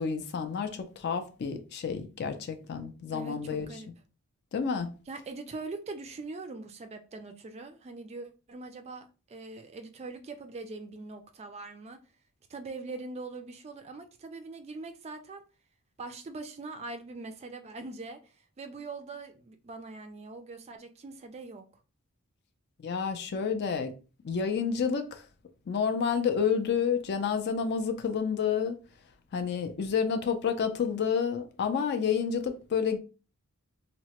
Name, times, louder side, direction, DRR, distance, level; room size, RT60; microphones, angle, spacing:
voice 1, 0.0-3.7 4.5-4.9 22.8-23.9 24.2-25.2 25.7-28.8 29.3-33.0, left 6 dB, 50° left, 0.4 m, -29 dB
voice 2, 3.1-3.9 5.1-12.0 12.5-15.4 16.0-21.6, right 3 dB, 30° right, 0.3 m, -42 dB
2.8 x 2.1 x 2.9 m
head